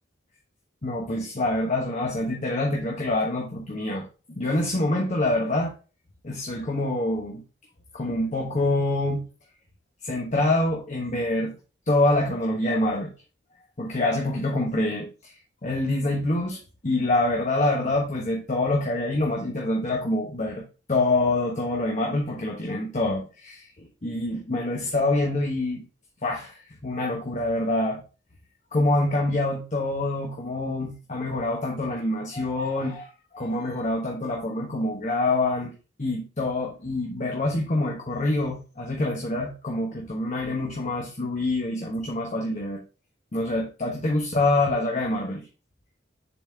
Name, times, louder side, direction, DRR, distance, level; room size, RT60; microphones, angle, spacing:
voice 1, 0.8-5.7 6.2-7.4 7.9-9.2 10.0-11.5 11.9-13.1 13.8-15.3 15.6-20.6 20.9-25.8 26.2-28.0 28.7-42.8 43.3-45.5, left 2 dB, 40° left, 0 dB, 1.1 m, -26 dB
7.0 x 4.1 x 3.4 m, 0.34 s
head